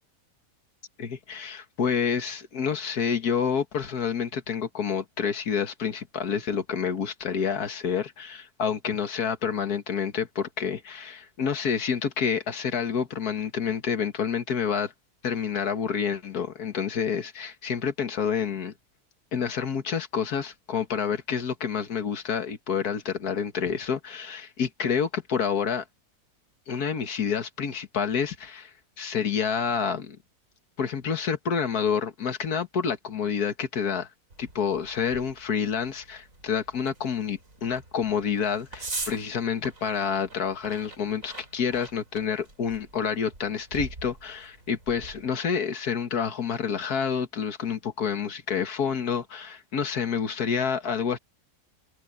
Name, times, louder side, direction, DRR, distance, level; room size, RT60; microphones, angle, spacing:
voice 1, 1.0-14.9 15.2-18.7 19.3-25.9 26.7-30.2 30.8-34.1 34.4-51.2, left 7 dB, 80° left, 2.1 m, -28 dB
sound 1, 34.3-45.3, right 2 dB, 60° right, 4.6 m, -43 dB
omnidirectional pair, 1.6 m